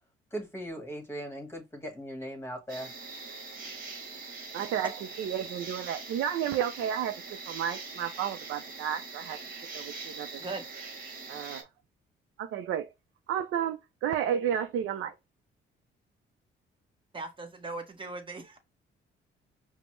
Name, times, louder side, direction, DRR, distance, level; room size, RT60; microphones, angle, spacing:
voice 1, 0.3-2.9, right 1 dB, 10° left, 1.4 m, -39 dB
sound 1, 2.7-11.6, right 4 dB, 45° right, 1.3 m, -42 dB
voice 2, 4.5-7.2 7.5-9.4 9.7-10.4 11.3-11.7 12.4-12.9 13.3-15.1, right 9 dB, 80° right, 0.5 m, -32 dB
voice 3, 17.1-18.6, right 3 dB, 25° right, 1.0 m, -39 dB
5.0 x 2.1 x 3.0 m
cardioid pair, 90°, 20 cm